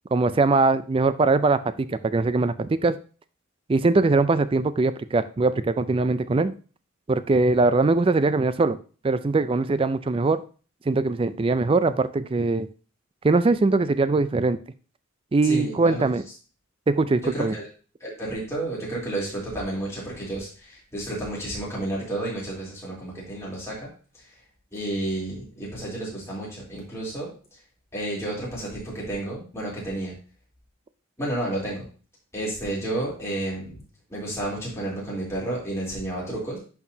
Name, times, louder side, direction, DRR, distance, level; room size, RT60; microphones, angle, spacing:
voice 1, 0.1-3.0 3.7-6.5 7.1-8.8 9.0-10.4 10.9-12.7 13.2-14.6 15.3-16.2 16.9-17.6, right 3 dB, 25° right, 13 dB, 0.4 m, -21 dB
voice 2, 15.4-16.1 17.2-17.6 18.0-23.9 24.1-24.2 24.7-27.3 27.9-30.2 31.2-31.9 32.3-33.8 34.1-36.6, right 1 dB, 15° left, -6 dB, 3.3 m, -31 dB
10.5 x 4.6 x 2.8 m, 0.37 s
head